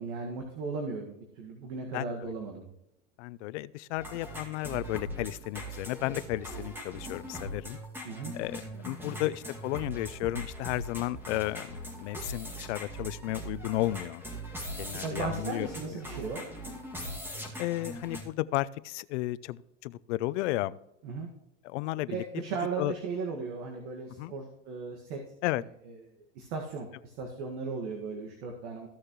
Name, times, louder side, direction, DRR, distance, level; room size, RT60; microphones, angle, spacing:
voice 1, 0.0-2.7 8.0-8.3 15.0-16.5 21.0-21.3 22.1-25.2 25.8-25.9 26.3-28.9, right 4 dB, 65° right, 1 dB, 1.9 m, -36 dB
voice 2, 1.9-2.3 3.2-7.8 8.3-14.2 14.8-16.0 17.6-20.8 21.6-22.2 22.8-22.9 24.2-24.3 25.4-25.6, left 17 dB, 70° left, 19 dB, 0.6 m, -33 dB
sound 1, 3.9-18.2, right 1 dB, 5° right, 2.2 m, -41 dB
15.0 x 6.5 x 3.1 m, 0.85 s
supercardioid pair, 130°, 37 cm